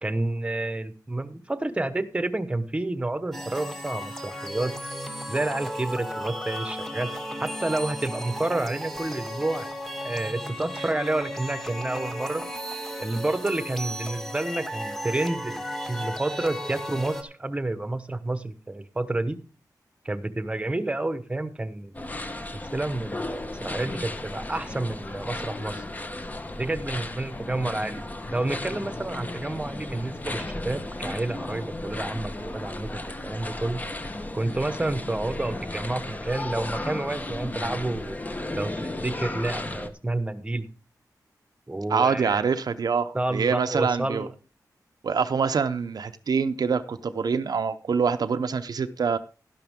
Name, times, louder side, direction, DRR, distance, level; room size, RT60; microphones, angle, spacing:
voice 1, 0.0-4.8 5.3-7.1 7.4-9.7 10.0-12.5 13.0-19.4 20.0-22.0 22.5-25.8 26.6-28.0 28.3-33.8 34.3-38.2 38.5-40.7 41.7-42.4 43.1-44.3, right 2 dB, 15° right, 1.1 m, -29 dB
Borealis Energy, 3.3-17.2, equal, 5° left, 1.5 m, -35 dB
sound 1, 21.9-39.9, left 2 dB, 25° left, 1.1 m, -34 dB
voice 2, 41.9-44.3 45.0-49.2, right 5 dB, 70° right, 0.6 m, -25 dB
12.0 x 11.5 x 3.6 m
wide cardioid pair, 140°, 7 cm